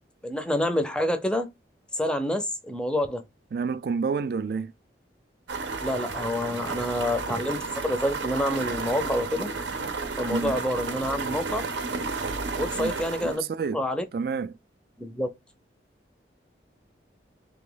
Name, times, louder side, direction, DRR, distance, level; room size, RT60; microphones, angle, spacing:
voice 1, 0.2-1.5 1.9-3.2 5.8-9.5 10.2-11.7 12.5-13.5 13.7-14.0 15.0-15.3, left 1 dB, 5° left, 0.5 m, -27 dB
voice 2, 3.5-4.7 10.3-10.6 12.8-13.0 13.2-13.8 14.1-14.6, right 5 dB, 55° right, 0.3 m, -29 dB
sound 1, 5.5-13.4, right 4 dB, 85° right, 0.7 m, -32 dB
3.2 x 3.0 x 3.8 m
head